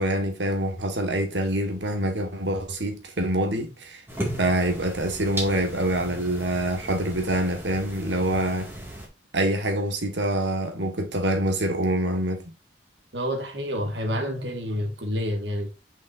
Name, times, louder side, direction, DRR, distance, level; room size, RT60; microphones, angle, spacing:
voice 1, 0.0-4.0 4.4-8.7 9.3-12.5, right 1 dB, 90° right, 1.7 m, -25 dB
sound 1, 4.1-9.1, right 1 dB, 15° right, 2.2 m, -36 dB
voice 2, 13.1-15.7, equal, 75° right, 1.8 m, -28 dB
6.2 x 5.7 x 2.6 m
head